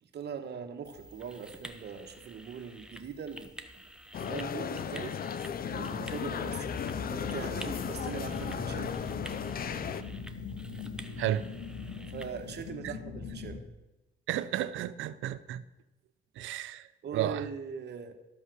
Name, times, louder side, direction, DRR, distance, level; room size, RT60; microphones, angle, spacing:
voice 1, 0.0-3.8 4.2-5.2 5.7-6.8 7.1-8.9 12.1-13.6 17.0-18.1, right 6 dB, 60° right, 1.3 m, -41 dB
sound 1, 0.8-12.7, right 1 dB, 5° right, 0.8 m, -50 dB
sound 2, 4.1-10.0, left 7 dB, 50° left, 0.6 m, -36 dB
sound 3, 5.6-13.6, left 4 dB, 85° left, 2.0 m, -41 dB
voice 2, 11.2-11.5 12.8-12.9 14.3-15.6 16.4-17.4, right 12 dB, 80° right, 0.6 m, -33 dB
13.0 x 5.6 x 6.2 m
cardioid pair, 90°, 20 cm